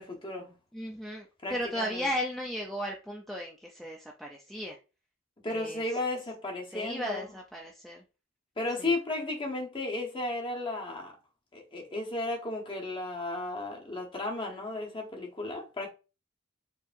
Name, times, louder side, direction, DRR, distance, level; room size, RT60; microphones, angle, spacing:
voice 1, 0.0-0.5 1.4-2.1 5.4-7.2 8.6-11.1 11.5-15.9, left 2 dB, 25° left, 0.9 m, -34 dB
voice 2, 0.7-4.8 5.5-5.8 6.7-8.0 8.8-8.9, equal, ahead, 0.4 m, -35 dB
4.6 x 2.7 x 2.5 m
head